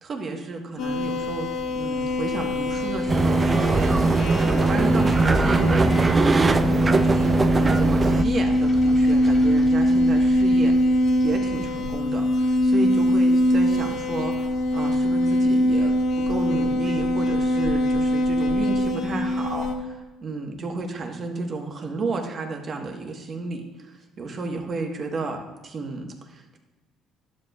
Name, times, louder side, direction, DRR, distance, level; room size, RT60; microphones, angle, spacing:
voice 1, 0.0-6.7 7.0-10.9 11.2-26.6, right 3 dB, 45° right, 3 dB, 1.2 m, -32 dB
sound 1, 0.8-19.7, left 1 dB, 80° left, 1.3 m, -22 dB
sound 2, 1.6-14.7 15.0-15.1, left 1 dB, 10° left, 1.6 m, -38 dB
sound 3, 3.1-8.2, right 3 dB, 25° right, 0.4 m, -20 dB
11.5 x 7.9 x 2.3 m, 1.2 s
cardioid pair, 100°, 0 cm